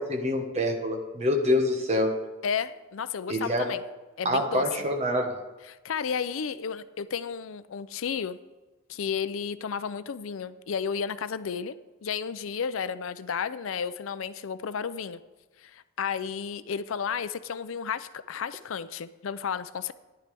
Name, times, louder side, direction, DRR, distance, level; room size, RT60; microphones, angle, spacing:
voice 1, 0.0-2.2 3.3-3.7 4.2-5.4, left 1 dB, 30° right, 3 dB, 1.4 m, -26 dB
voice 2, 2.4-3.8 4.2-4.7 5.7-8.4 8.9-11.7 12.0-15.2 15.6-19.9, left 6 dB, 80° left, 14 dB, 0.5 m, -32 dB
14.0 x 10.5 x 3.4 m, 1.2 s
head